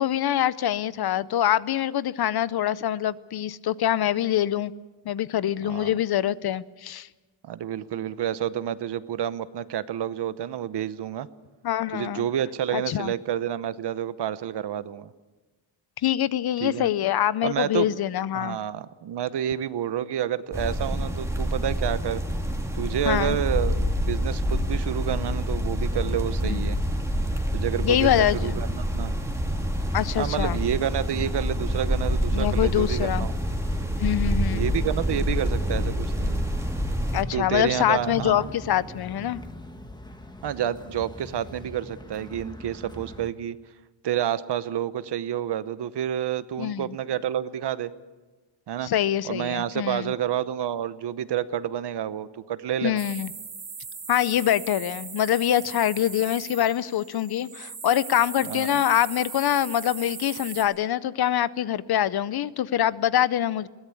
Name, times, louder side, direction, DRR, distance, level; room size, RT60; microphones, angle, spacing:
voice 1, 0.0-4.7 5.0-7.1 11.6-12.3 12.7-13.1 16.0-18.6 23.0-23.4 26.5-26.7 27.8-28.4 29.9-30.6 32.3-33.3 34.0-34.6 37.1-39.4 46.6-46.9 48.8-50.1 52.8-53.3 54.1-63.7, left 11 dB, 55° left, 18 dB, 0.6 m, -24 dB
voice 2, 5.6-5.9 7.4-11.3 11.9-15.1 16.6-16.9 17.4-18.0 18.3-22.2 22.7-26.8 27.5-29.2 30.2-33.3 34.5-36.4 37.1-38.5 40.4-43.6 44.0-47.9 48.7-48.9 49.2-53.0 58.4-58.8, right 10 dB, 60° right, 15 dB, 0.9 m, -29 dB
sound 1, 20.5-37.2, equal, 5° right, 2.1 m, -27 dB
sound 2, 24.3-43.3, left 1 dB, 10° left, 1.4 m, -41 dB
sound 3, 53.0-60.6, right 5 dB, 35° right, 3.1 m, -39 dB
22.0 x 17.0 x 8.4 m, 1.2 s
wide cardioid pair, 165°, 46 cm